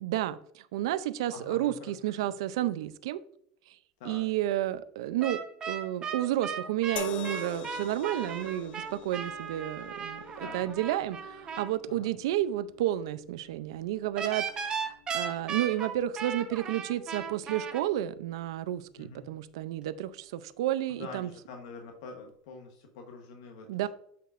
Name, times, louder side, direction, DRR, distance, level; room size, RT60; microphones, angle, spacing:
voice 1, 0.0-3.2 3.7-3.8 4.1-5.4 5.7-21.3 23.7-23.9, right 13 dB, 85° right, 0.4 m, -31 dB
voice 2, 1.3-2.3 4.0-4.3 10.4-10.6 11.9-12.1 19.0-19.3 21.0-23.9, left 4 dB, 80° left, 1.1 m, -46 dB
sound 1, 5.2-11.7 14.2-17.8, right 6 dB, 30° right, 1.1 m, -36 dB
sound 2, 7.0-20.3 21.2-21.4, left 12 dB, 55° left, 0.6 m, -47 dB
8.2 x 5.9 x 2.5 m
supercardioid pair, 120°, 3 cm